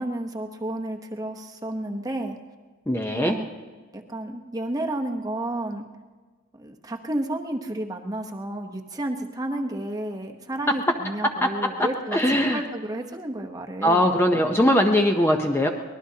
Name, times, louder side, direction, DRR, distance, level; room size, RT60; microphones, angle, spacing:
voice 1, 0.0-2.4 3.1-3.5 3.9-5.8 6.5-14.1, right 1 dB, 15° right, 3 dB, 0.9 m, -31 dB
voice 2, 2.9-3.4 10.7-10.8 11.4-11.5 11.8-12.6 13.8-15.7, equal, 10° left, 3 dB, 0.7 m, -21 dB
24.0 x 19.5 x 2.8 m, 1.4 s
head